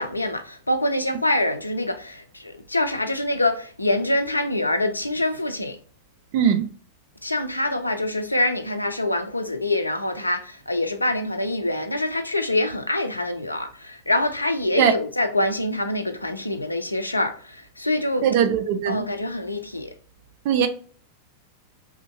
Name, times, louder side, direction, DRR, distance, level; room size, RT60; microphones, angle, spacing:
voice 1, 0.0-5.8 7.2-18.3 18.9-19.9, left 1 dB, 85° left, 0.3 m, -25 dB
voice 2, 6.3-6.6 14.8-14.9 18.2-19.0 20.5-20.7, right 8 dB, 50° right, 0.3 m, -20 dB
2.7 x 2.6 x 2.3 m
figure-of-eight pair, 90°, 0 cm